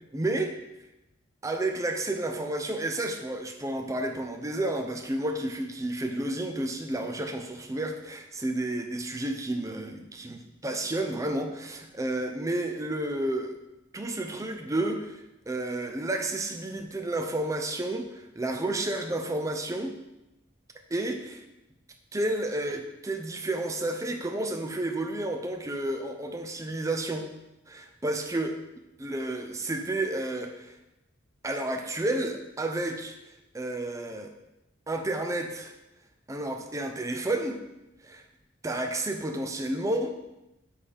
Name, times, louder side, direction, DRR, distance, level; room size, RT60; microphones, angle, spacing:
voice 1, 0.1-0.5 1.4-13.5 13.9-19.9 20.9-21.4 22.1-27.3 27.7-28.6 29.0-30.8 31.4-33.1 33.5-34.3 34.9-35.7 36.3-37.6 38.0-38.2 38.6-40.1, right 1 dB, 15° right, 4 dB, 0.5 m, -31 dB
6.7 x 5.6 x 3.4 m, 0.93 s
head